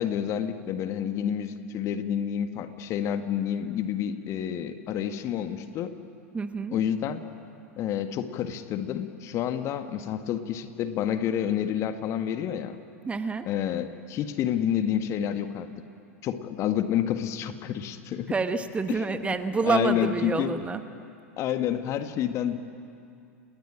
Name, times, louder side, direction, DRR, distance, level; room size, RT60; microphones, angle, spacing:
voice 1, 0.0-5.9 6.7-7.2 7.8-12.8 13.4-15.7 16.2-18.3 18.9-20.6 21.4-22.6, left 9 dB, 35° left, 9 dB, 1.7 m, -29 dB
voice 2, 6.3-6.8 13.1-13.5 18.3-20.8, right 4 dB, 15° right, 10 dB, 1.2 m, -28 dB
30.0 x 20.5 x 8.9 m, 2.5 s
figure-of-eight pair, 90°, 8 cm